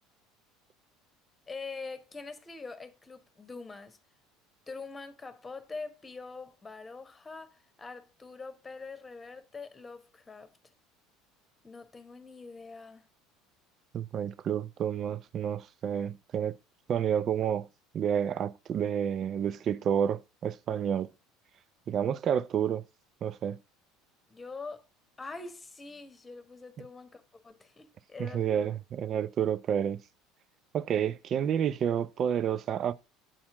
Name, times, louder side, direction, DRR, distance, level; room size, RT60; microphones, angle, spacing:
voice 1, 1.5-4.0 4.7-10.5 11.6-13.0 24.3-24.9 25.2-28.7, left 4 dB, 20° left, 1.2 m, -44 dB
voice 2, 13.9-16.6 16.9-17.7 17.9-21.1 21.9-22.8 23.2-23.6 26.8-26.9 28.2-30.0 30.7-32.9, right 9 dB, 40° right, 0.5 m, -29 dB
7.6 x 4.3 x 4.8 m
figure-of-eight pair, 65°, 0 cm